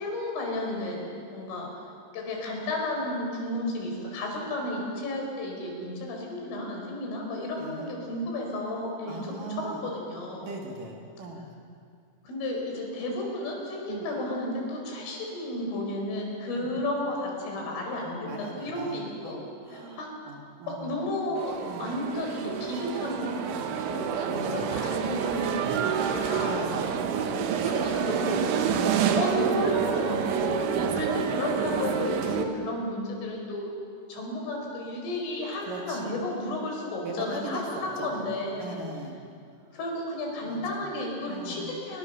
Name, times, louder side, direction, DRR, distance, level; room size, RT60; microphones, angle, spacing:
voice 1, 0.0-1.8 2.1-10.5 12.2-19.4 19.7-20.1 20.7-26.5 27.8-28.7 29.2-33.7 34.1-38.8 39.7-42.0, left 1 dB, 80° left, 1 dB, 7.4 m, -33 dB
voice 2, 7.6-7.9 9.1-9.8 10.4-11.5 13.9-14.1 16.5-16.7 18.2-21.0 21.7-21.9 24.3-25.0 26.5-27.0 27.4-28.4 28.9-29.2 30.7-30.9 32.5-32.8 35.6-36.1 37.0-38.2 38.6-39.2 39.7-39.8 40.4-40.9 41.3-41.7, right 3 dB, 50° right, 0 dB, 3.4 m, -39 dB
sound 1, 21.4-32.5, right 7 dB, 75° right, 3.6 m, -28 dB
29.0 x 23.0 x 6.9 m, 2.4 s
omnidirectional pair, 5.6 m